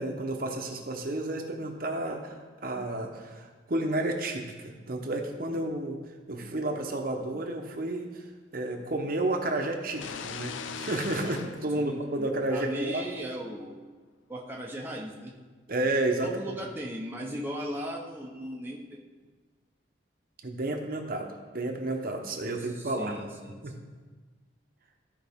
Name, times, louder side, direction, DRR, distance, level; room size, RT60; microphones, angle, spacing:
voice 1, 0.0-6.0 6.3-8.2 8.5-13.0 15.7-16.3 20.4-23.2 23.6-23.7, right 2 dB, 45° right, 3 dB, 0.9 m, -31 dB
sound 1, 9.9-12.7, left 6 dB, 80° left, 0.5 m, -40 dB
voice 2, 11.8-13.7 14.3-15.3 16.2-19.0 22.6-23.9, equal, 10° right, -2 dB, 0.7 m, -37 dB
14.0 x 5.1 x 3.5 m, 1.4 s
head